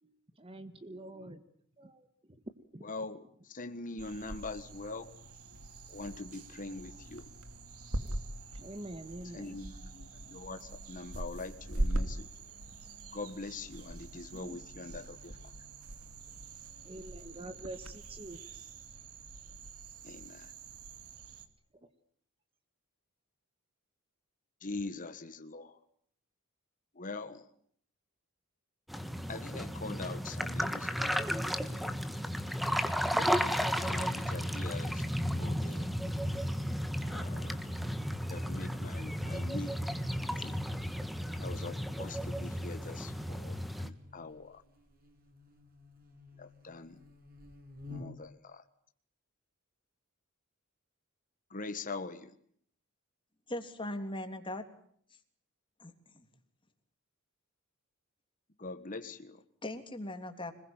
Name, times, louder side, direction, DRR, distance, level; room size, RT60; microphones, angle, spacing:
voice 1, 0.4-1.4 1.8-2.1 2.7-2.9 8.5-9.6 14.3-14.6 16.8-18.4 21.8-21.9, right 1 dB, 25° right, 10 dB, 1.6 m, -46 dB
voice 2, 2.8-5.1 5.9-7.3 9.3-12.3 13.1-15.5 20.0-20.5 24.6-25.8 26.9-27.4 29.3-31.2 33.7-35.0 35.4-35.9 37.0-37.7 38.3-39.7 40.2-40.6 41.3-44.6 46.4-47.0 47.9-48.6 51.5-52.3 58.6-59.4, left 3 dB, 40° left, 8 dB, 1.6 m, -43 dB
sound 1, 4.0-21.5, right 1 dB, 90° right, 2.8 m, -42 dB
sound 2, 28.9-43.9, equal, ahead, 1.6 m, -34 dB
Buzz, 41.1-48.4, left 3 dB, 45° right, 7.4 m, -54 dB
voice 3, 53.5-54.6 55.8-56.3 59.6-60.5, left 1 dB, 25° left, 6 dB, 3.1 m, -39 dB
26.0 x 21.0 x 9.0 m, 0.63 s
head